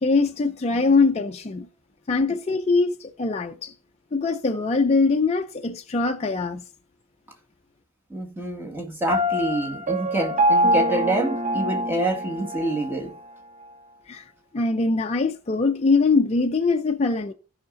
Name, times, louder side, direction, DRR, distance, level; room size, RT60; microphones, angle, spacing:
voice 1, 0.0-1.7 2.1-3.7 4.1-6.6 14.1-14.2 14.5-17.3, left 3 dB, 30° left, 0.5 m, -22 dB
voice 2, 8.1-13.1, right 2 dB, 10° right, 1.8 m, -27 dB
Piano, 9.1-12.9, equal, 35° right, 1.0 m, -24 dB
15.0 x 5.7 x 3.9 m
head